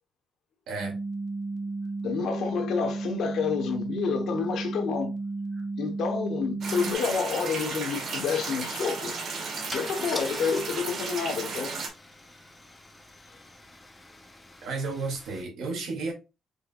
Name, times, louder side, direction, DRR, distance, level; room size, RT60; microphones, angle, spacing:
voice 1, 0.7-1.0 5.6-5.7 14.6-16.1, right 3 dB, 75° right, 2.2 m, -33 dB
sound 1, 0.8-6.9, right 3 dB, 40° right, 1.1 m, -33 dB
voice 2, 2.0-5.2 5.8-9.2 9.7-11.8, left 6 dB, 70° left, 0.9 m, -29 dB
sound 2, 6.6-11.9, right 4 dB, 60° right, 1.5 m, -34 dB
Car / Engine starting / Idling, 7.1-7.2 7.5-7.7 9.7-15.4, left 2 dB, 15° left, 0.7 m, -44 dB
5.2 x 3.6 x 2.3 m
cardioid pair, 105°, 0 cm